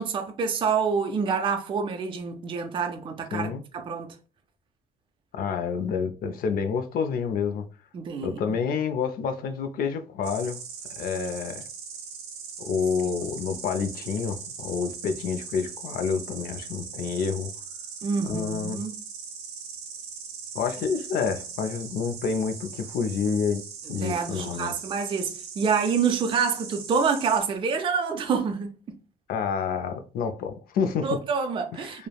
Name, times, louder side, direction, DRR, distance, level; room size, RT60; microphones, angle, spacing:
voice 1, 0.0-4.1 7.9-8.6 13.2-13.3 18.0-19.0 23.9-28.7 31.0-32.1, right 5 dB, 30° right, 0.4 m, -27 dB
voice 2, 3.3-3.6 5.3-7.7 8.2-10.6 11.0-11.7 12.6-17.5 18.2-18.8 20.5-23.6 23.9-24.7 29.3-31.2 31.7-32.1, left 6 dB, 60° left, 0.4 m, -28 dB
Insect, 10.2-27.4, right 6 dB, 80° right, 0.7 m, -40 dB
3.1 x 2.0 x 2.2 m
cardioid pair, 110°, 17 cm